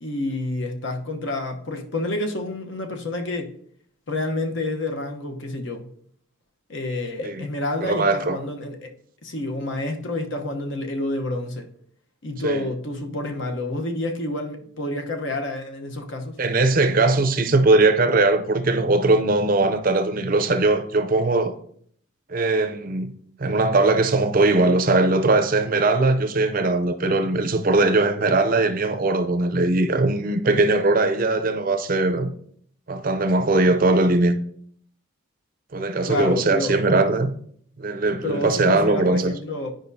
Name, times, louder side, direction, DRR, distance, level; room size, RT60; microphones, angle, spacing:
voice 1, 0.0-3.5 4.1-5.9 6.7-8.9 9.2-11.7 12.2-16.4 36.1-36.7 38.2-39.7, left 2 dB, 60° left, 0.9 m, -29 dB
voice 2, 7.8-8.4 12.4-12.6 16.4-21.5 22.3-23.1 23.4-32.3 32.9-34.3 35.7-37.3 37.8-39.3, right 2 dB, 40° right, 0.5 m, -20 dB
10.5 x 5.1 x 2.7 m
head